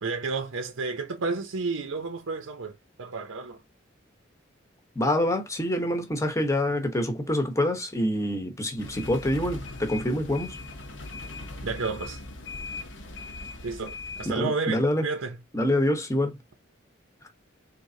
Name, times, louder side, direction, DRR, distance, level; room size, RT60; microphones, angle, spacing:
voice 1, 0.0-3.6 11.6-12.2 13.6-15.4, right 4 dB, 90° right, 0.7 m, -31 dB
voice 2, 5.0-10.6 14.3-15.0 15.5-16.4, left 1 dB, 15° left, 0.9 m, -26 dB
sound 1, 8.8-14.4, left 2 dB, 65° left, 0.9 m, -39 dB
4.2 x 3.2 x 2.7 m
head